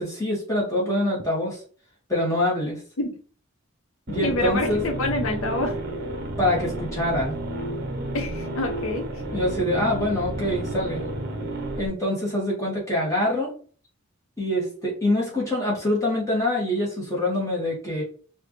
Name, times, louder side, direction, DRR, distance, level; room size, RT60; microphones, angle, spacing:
voice 1, 0.0-1.6 2.1-2.8 4.1-4.8 6.4-7.3 9.3-11.1 11.7-13.5 14.4-18.0, left 1 dB, 15° left, -5 dB, 1.7 m, -25 dB
sound 1, 4.1-11.9, right 1 dB, 45° right, 0.7 m, -31 dB
voice 2, 4.2-5.7 8.1-9.2, left 2 dB, 75° left, 3 dB, 0.7 m, -27 dB
4.9 x 2.7 x 3.1 m, 0.42 s
head